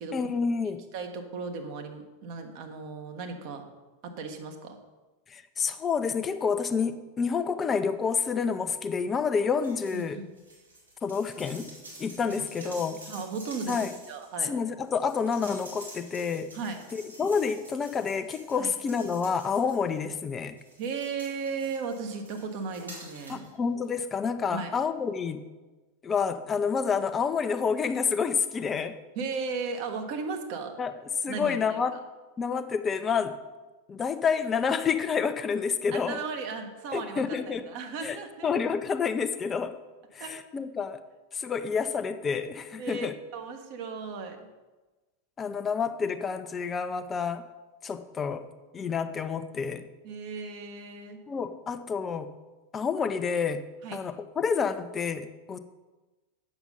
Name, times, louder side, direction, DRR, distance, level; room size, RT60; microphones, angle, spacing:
voice 1, 0.1-0.8 5.3-10.2 11.0-11.7 12.0-13.0 13.7-13.9 14.4-16.5 16.9-20.5 23.3-25.4 26.0-29.0 30.8-30.9 31.2-32.0 32.4-33.4 33.9-36.2 36.9-37.7 38.0-38.2 38.4-39.8 40.1-41.0 41.3-43.1 45.4-47.4 47.8-48.5 48.7-49.9 51.3-52.3 52.7-53.7 53.9-55.6, left 6 dB, 20° left, 10 dB, 0.7 m, -29 dB
voice 2, 0.9-3.6 4.0-4.8 9.9-10.3 12.3-12.7 13.0-14.5 16.5-16.8 18.6-18.7 20.8-23.5 24.5-24.7 29.1-30.7 31.3-31.8 35.9-38.5 40.2-40.4 42.8-44.5 50.0-51.2 53.8-54.0, right 4 dB, 45° right, 5 dB, 1.5 m, -36 dB
sound 1, 9.6-10.0 10.3-20.1 20.6-23.5 23.8-23.9, right 1 dB, 80° right, 2.9 m, -48 dB
8.8 x 7.0 x 5.6 m, 1.2 s
figure-of-eight pair, 90°, 0 cm